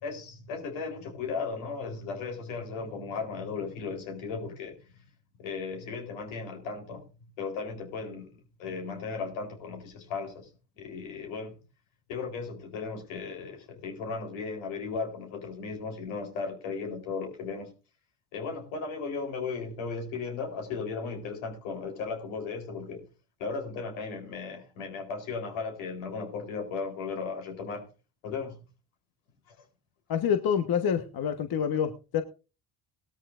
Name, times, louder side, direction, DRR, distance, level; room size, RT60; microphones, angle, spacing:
voice 1, 0.0-4.7 5.4-7.0 7.4-10.5 10.7-11.6 12.1-17.7 18.3-23.0 23.4-27.9 28.2-28.6 29.5-29.6, left 4 dB, 80° left, 4.0 m, -36 dB
voice 2, 30.1-32.2, left 8 dB, 50° left, 1.3 m, -27 dB
18.5 x 13.0 x 2.5 m
supercardioid pair, 75°, 47 cm